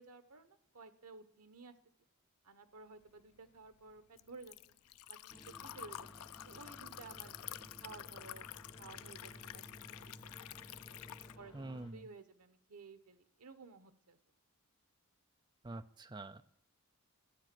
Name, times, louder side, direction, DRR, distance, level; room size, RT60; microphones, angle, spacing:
voice 1, 0.0-1.7 2.4-4.6 5.1-7.4 7.8-8.5 8.8-9.6 9.9-11.0 11.4-14.2, right 4 dB, 90° right, 11 dB, 1.0 m, -55 dB
Liquid, 3.1-11.4, left 12 dB, 80° left, 0.4 m, -50 dB
sound 1, 5.3-11.9, equal, 20° left, 1.6 m, -56 dB
voice 2, 11.5-12.1 15.6-16.4, right 2 dB, 20° right, 10 dB, 0.4 m, -46 dB
13.0 x 8.9 x 6.0 m, 0.71 s
head